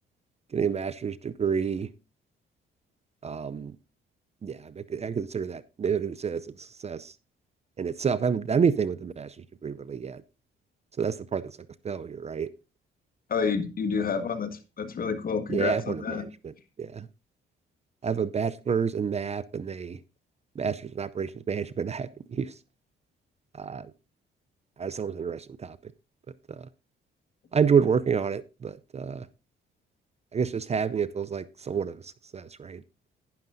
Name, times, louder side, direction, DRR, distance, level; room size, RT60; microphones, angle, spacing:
voice 1, 0.5-1.9 3.2-3.7 4.4-7.1 7.8-9.4 9.6-10.2 11.0-11.6 11.8-12.5 15.5-16.3 16.8-17.1 18.0-20.0 20.6-22.5 23.6-23.9 24.8-25.8 26.5-26.7 27.5-29.3 30.3-32.8, right 6 dB, 35° right, 0.5 m, -29 dB
voice 2, 13.3-16.2, left 5 dB, 45° left, 1.6 m, -29 dB
11.5 x 10.5 x 2.6 m
cardioid pair, 90°, 20 cm